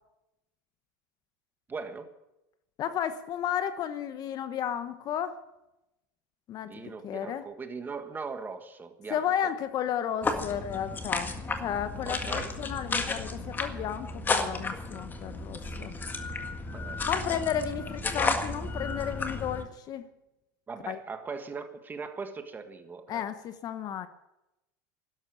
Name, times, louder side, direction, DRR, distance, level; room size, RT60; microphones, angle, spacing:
voice 1, 1.7-2.1 6.7-9.2 12.0-12.6 16.7-17.0 20.7-23.2, right 4 dB, 20° right, 8 dB, 1.6 m, -39 dB
voice 2, 2.8-5.4 6.5-7.5 9.1-15.9 17.0-20.1 20.9-21.0 23.1-24.1, left 9 dB, 40° left, 11 dB, 1.1 m, -33 dB
sound 1, 10.2-19.6, left 3 dB, 20° left, 1.8 m, -33 dB
13.0 x 11.0 x 9.2 m, 0.94 s
supercardioid pair, 125°, 10 cm